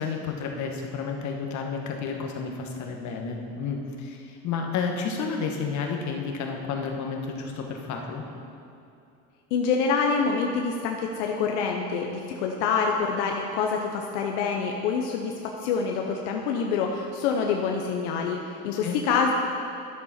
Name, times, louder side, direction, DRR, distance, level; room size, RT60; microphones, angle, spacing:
voice 1, 0.0-8.2 18.8-19.0, left 5 dB, 55° left, 2 dB, 1.4 m, -31 dB
voice 2, 9.5-19.3, left 5 dB, 85° left, 1 dB, 0.8 m, -26 dB
11.0 x 7.3 x 4.3 m, 2.7 s
supercardioid pair, 95°, 35 cm